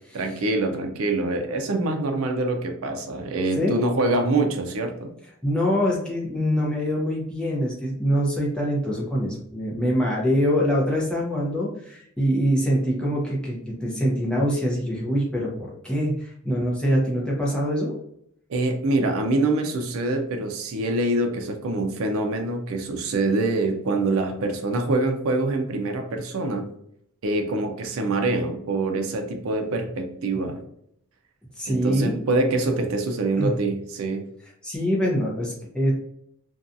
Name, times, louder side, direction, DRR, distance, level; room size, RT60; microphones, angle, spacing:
voice 1, 0.1-5.1 16.5-16.6 18.5-26.7 27.2-30.6 31.7-34.2, right 2 dB, 70° right, 4 dB, 0.4 m, -25 dB
voice 2, 5.4-18.0 31.6-32.2 33.4-33.6 34.6-35.9, equal, 5° left, -5 dB, 0.6 m, -24 dB
2.6 x 2.3 x 2.5 m, 0.71 s
head